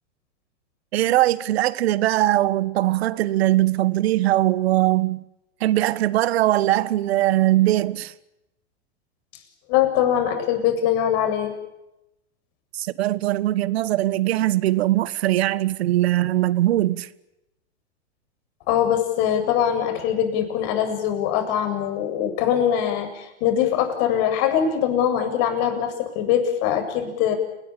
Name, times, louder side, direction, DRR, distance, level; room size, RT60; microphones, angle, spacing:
voice 1, 0.9-5.2 5.6-8.1 12.7-17.1, right 15 dB, 65° right, 1.5 m, -21 dB
voice 2, 9.7-11.5 18.7-27.3, left 9 dB, 50° left, 7.8 m, -22 dB
30.0 x 19.5 x 8.9 m
hypercardioid pair, 115°, 34 cm